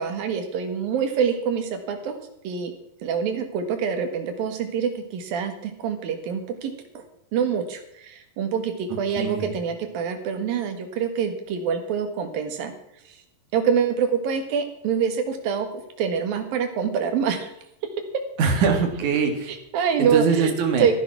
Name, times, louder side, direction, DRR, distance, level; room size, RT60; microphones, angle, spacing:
voice 1, 0.0-2.7 3.0-7.0 7.3-12.7 13.1-13.2 13.5-17.5 19.5-20.9, right 7 dB, 80° right, 7 dB, 3.5 m, -26 dB
voice 2, 9.2-9.5 18.4-19.5 20.0-20.9, right 5 dB, 60° right, 4 dB, 3.4 m, -22 dB
14.5 x 11.0 x 6.1 m, 0.80 s
omnidirectional pair, 4.1 m